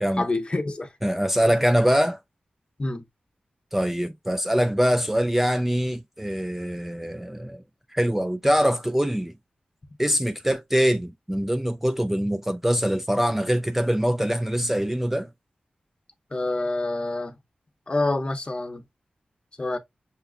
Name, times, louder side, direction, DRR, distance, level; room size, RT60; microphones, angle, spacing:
voice 1, 0.2-0.9 2.8-3.0 16.3-17.4 17.9-18.8 19.6-19.8, left 2 dB, 35° left, 0.7 m, -27 dB
voice 2, 1.0-2.2 3.7-7.6 7.9-9.3 10.0-15.3, equal, 10° right, 0.3 m, -23 dB
6.8 x 2.4 x 2.3 m
wide cardioid pair, 70°, 3 cm